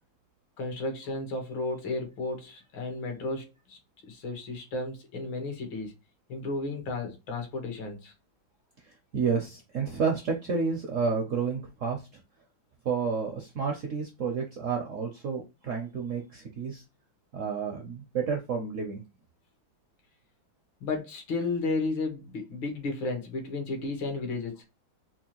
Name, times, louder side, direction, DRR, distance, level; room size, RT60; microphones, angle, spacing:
voice 1, 0.6-3.8 4.1-5.9 6.3-8.1 20.8-24.6, left 3 dB, 75° left, 1.9 m, -33 dB
voice 2, 9.1-12.2 12.8-16.8 17.3-19.0, right 5 dB, 70° right, 0.7 m, -30 dB
4.5 x 2.4 x 2.9 m
omnidirectional pair, 2.1 m